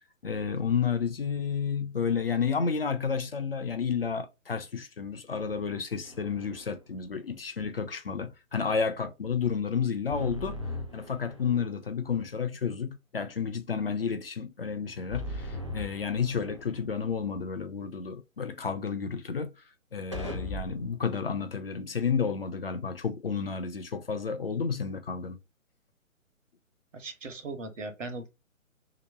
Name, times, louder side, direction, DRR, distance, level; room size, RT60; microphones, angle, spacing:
voice 1, 0.2-10.6 10.9-19.5 19.9-25.4, left 6 dB, 45° left, 0.5 m, -31 dB
sound 1, 6.0-6.8 10.1-11.8 15.1-16.8 20.1-21.0, left 1 dB, 25° right, 0.4 m, -38 dB
voice 2, 26.9-28.3, right 3 dB, 65° right, 1.1 m, -38 dB
3.0 x 3.0 x 2.9 m
figure-of-eight pair, 140°, 41 cm